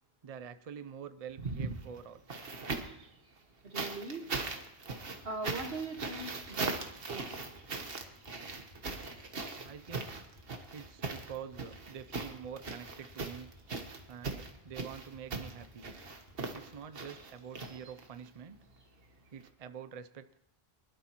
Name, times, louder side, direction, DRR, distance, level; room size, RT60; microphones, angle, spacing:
voice 1, 0.2-2.2 9.6-10.2 10.7-13.5 14.1-15.9 16.5-18.6 19.3-20.4, right 7 dB, 45° right, 12 dB, 0.6 m, -46 dB
sound 1, 1.3-3.0 3.7-18.3 19.4-19.5, right 3 dB, 65° right, 1.5 m, -40 dB
voice 2, 3.6-4.3 5.2-6.7 7.1-7.4, right 3 dB, 80° right, 4 dB, 1.9 m, -40 dB
sound 2, 5.2-17.5, left 2 dB, 55° left, 5.2 m, -59 dB
23.5 x 12.5 x 3.0 m, 0.82 s
omnidirectional pair, 1.0 m